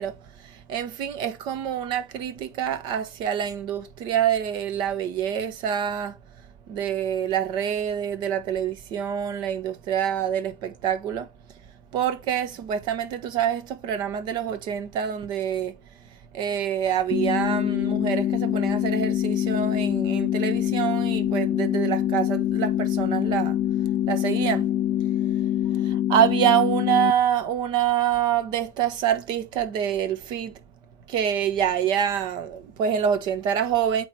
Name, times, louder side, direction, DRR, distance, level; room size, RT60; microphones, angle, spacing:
voice 1, 0.0-6.2 6.7-11.3 11.9-23.6 23.8-24.7 25.7-30.5 31.1-34.0, right 9 dB, 50° right, 1.3 m, -26 dB
sound 1, 17.1-27.1, left 12 dB, 35° left, 0.7 m, -24 dB
8.6 x 3.2 x 4.8 m
hypercardioid pair, 85°, 10 cm